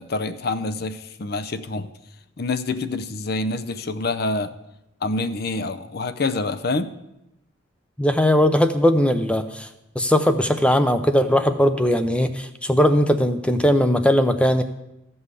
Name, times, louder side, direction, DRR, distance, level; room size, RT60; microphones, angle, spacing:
voice 1, 0.0-1.9 2.4-4.5 5.0-6.9, left 3 dB, 50° left, 11 dB, 0.6 m, -26 dB
voice 2, 8.0-9.7 10.0-14.6, equal, 5° left, 9 dB, 0.5 m, -19 dB
14.0 x 5.5 x 8.2 m, 0.88 s
head